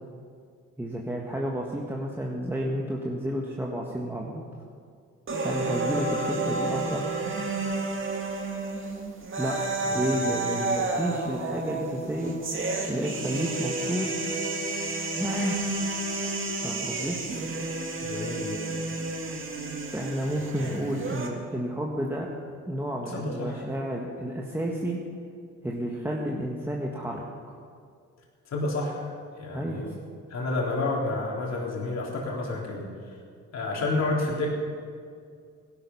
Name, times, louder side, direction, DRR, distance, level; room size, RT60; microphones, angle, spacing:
voice 1, 0.8-4.4 5.4-7.0 9.4-12.4 12.9-14.1 15.1-15.6 16.6-17.2 19.9-22.3 22.7-25.0 25.6-27.6 29.5-29.8, equal, 5° right, -2 dB, 1.6 m, -31 dB
sound 1, 5.3-21.3, right 3 dB, 45° right, 2.3 m, -31 dB
voice 2, 9.9-10.4 18.0-18.9 23.1-23.6 28.5-29.1 29.4-29.9 30.3-33.2 33.5-34.6, left 2 dB, 60° left, -3 dB, 3.8 m, -30 dB
17.0 x 12.0 x 5.6 m, 2.2 s
cardioid pair, 90°, 30 cm